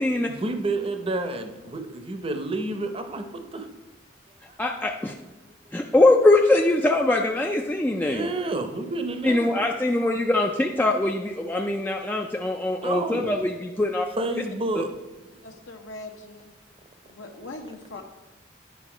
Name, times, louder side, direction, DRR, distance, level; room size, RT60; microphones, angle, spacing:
voice 1, 0.3-3.7 4.5-4.6 8.1-9.4 12.8-13.4 14.1-14.9, right 2 dB, 30° right, 7 dB, 0.7 m, -29 dB
voice 2, 4.6-5.1 5.7-8.3 9.2-14.1 14.8-14.9, left 2 dB, 10° left, 2 dB, 0.3 m, -22 dB
voice 3, 15.4-16.5 17.1-18.0, left 2 dB, 75° left, 2 dB, 0.8 m, -41 dB
9.3 x 5.2 x 4.9 m, 1.1 s
head